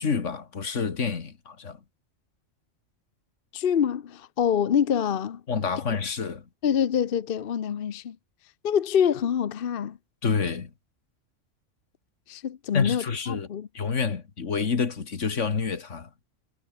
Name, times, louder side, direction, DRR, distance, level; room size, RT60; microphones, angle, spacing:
voice 1, 0.0-1.8 5.5-6.4 10.2-10.7 12.7-13.5 13.7-16.1, left 5 dB, 80° left, 2.1 m, -28 dB
voice 2, 3.5-5.4 6.6-8.2 8.6-10.0 12.3-13.7, left 8 dB, 55° left, 0.9 m, -25 dB
omnidirectional pair, 1.3 m